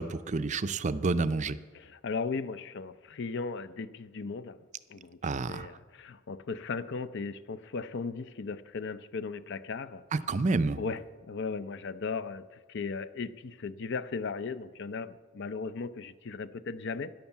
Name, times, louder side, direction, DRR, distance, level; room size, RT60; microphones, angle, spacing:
voice 1, 0.0-1.6 5.2-5.7 10.1-10.8, right 3 dB, 35° right, 12 dB, 0.5 m, -29 dB
voice 2, 1.7-4.6 4.9-10.0 10.8-11.0 11.3-17.1, left 4 dB, 55° left, 14 dB, 0.5 m, -37 dB
12.5 x 10.5 x 7.2 m, 1.4 s
head